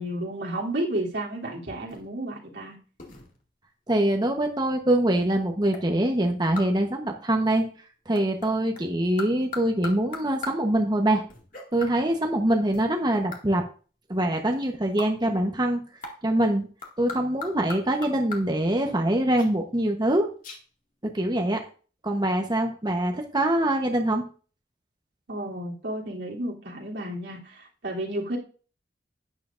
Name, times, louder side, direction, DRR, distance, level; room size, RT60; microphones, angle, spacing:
voice 1, 0.0-2.7 25.3-28.4, right 1 dB, 85° right, -3 dB, 3.1 m, -32 dB
sound 1, 1.9-2.2 3.0-3.4 5.7-5.9 6.6-6.8 8.1-8.8 9.2-10.7 11.3-12.0 12.7-13.5 15.0-15.2 16.0-16.3 16.8-18.5 19.4-19.5 20.1-20.2 20.4-20.6, left 4 dB, 50° left, 2.2 m, -39 dB
voice 2, 3.9-7.7 8.1-11.2 11.7-13.6 14.1-15.8 16.2-16.7 17.0-20.3 21.0-21.6 22.0-24.2, right 1 dB, 25° right, 3 dB, 1.0 m, -24 dB
11.5 x 9.6 x 2.6 m, 0.39 s
head